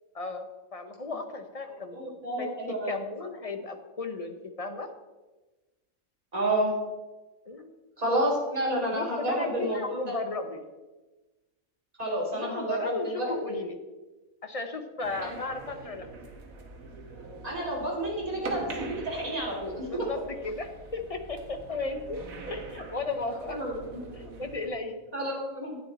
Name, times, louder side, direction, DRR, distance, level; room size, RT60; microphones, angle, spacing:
voice 1, 0.1-2.6 2.8-4.9 7.5-7.7 8.9-10.6 12.4-13.8 14.4-16.1 19.8-23.6 24.1-25.0, left 3 dB, 30° left, 6 dB, 0.7 m, -35 dB
voice 2, 1.9-2.9 6.3-6.7 8.0-10.1 12.0-13.5 15.2-15.3 17.4-19.9 23.5-24.0 25.1-25.8, right 1 dB, 25° right, -4 dB, 2.9 m, -30 dB
sound 1, 15.0-24.7, right 3 dB, 70° right, 1.7 m, -43 dB
9.9 x 9.8 x 4.1 m, 1.2 s
omnidirectional pair, 1.5 m